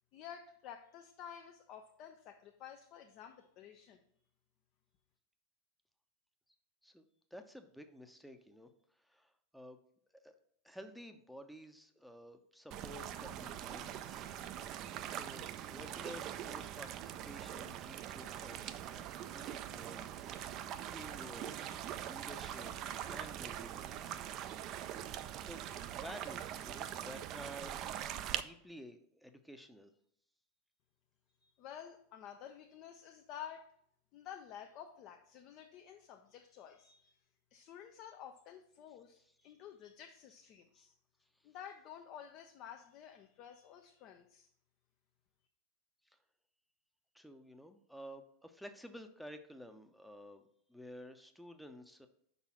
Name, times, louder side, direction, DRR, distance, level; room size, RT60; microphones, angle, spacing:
voice 1, 0.1-4.0 31.4-33.7 34.1-37.2 37.5-40.9 41.4-44.5, left 9 dB, 45° left, 4 dB, 0.5 m, -51 dB
voice 2, 7.3-8.7 9.0-9.8 10.2-10.3 10.6-14.3 15.1-20.6 20.9-21.5 22.0-22.7 23.0-24.2 25.4-25.6 25.9-29.9 40.8-40.9 46.1-46.2 47.1-50.4 50.7-52.1, equal, ahead, 7 dB, 0.7 m, -52 dB
sound 1, 12.7-28.4, right 11 dB, 40° right, 0.4 m, -43 dB
5.5 x 4.1 x 6.0 m, 0.68 s
figure-of-eight pair, 85°, 0 cm